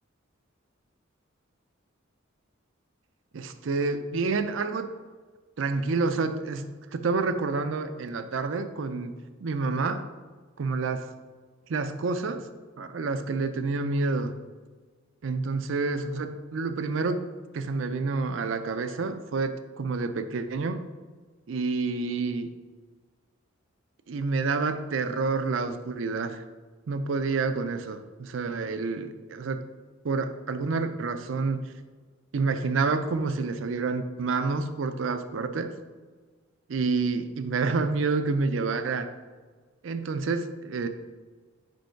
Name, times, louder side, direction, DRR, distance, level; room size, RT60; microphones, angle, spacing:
voice 1, 3.3-4.9 5.6-9.1 9.4-10.1 10.6-11.1 11.7-12.5 12.8-14.4 15.2-17.2 17.5-20.8 21.5-22.5 24.1-26.4 26.9-29.7 30.0-31.7 32.3-35.7 36.7-39.1 39.8-40.9, right 4 dB, 70° right, 10 dB, 0.5 m, -28 dB
5.2 x 4.5 x 4.5 m, 1.4 s
head